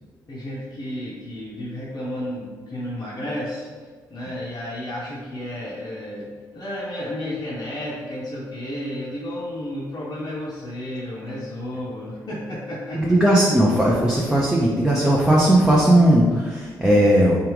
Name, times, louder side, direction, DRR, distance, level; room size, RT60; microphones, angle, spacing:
voice 1, 0.3-13.2, left 1 dB, 35° left, -7 dB, 0.7 m, -32 dB
voice 2, 12.9-17.4, right 1 dB, 5° right, -5 dB, 0.6 m, -17 dB
3.3 x 2.4 x 3.2 m, 1.5 s
figure-of-eight pair, 40°, 10 cm